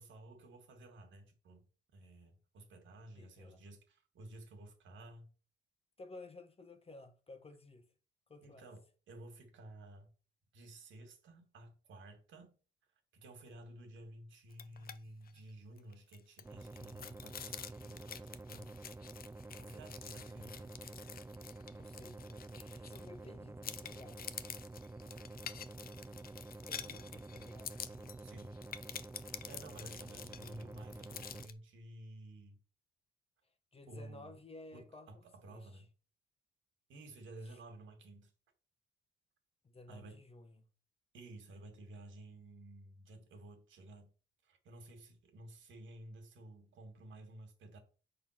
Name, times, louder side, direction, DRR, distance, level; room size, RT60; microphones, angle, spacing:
voice 1, 0.0-1.7 1.9-5.3 8.4-10.1 10.5-12.5 13.1-18.7 19.6-20.7 28.2-28.6 28.9-32.6 33.9-34.4 34.7-35.9 36.9-38.3 39.9-40.2 41.1-44.1 44.4-47.8, right 1 dB, 75° right, 2.4 m, -53 dB
voice 2, 3.2-3.6 6.0-7.9 8.3-8.7 21.7-24.2 26.2-26.4 26.7-28.2 33.7-35.2 35.5-35.8 37.4-37.6 39.6-40.7, left 2 dB, 30° left, 1.2 m, -55 dB
sound 1, 14.5-15.0 15.3-15.4 15.8-23.3 23.6-31.5, left 8 dB, 50° left, 0.7 m, -48 dB
sound 2, 16.4-31.5, right 2 dB, 10° right, 0.5 m, -49 dB
7.1 x 4.0 x 5.9 m
cardioid pair, 90°, 20 cm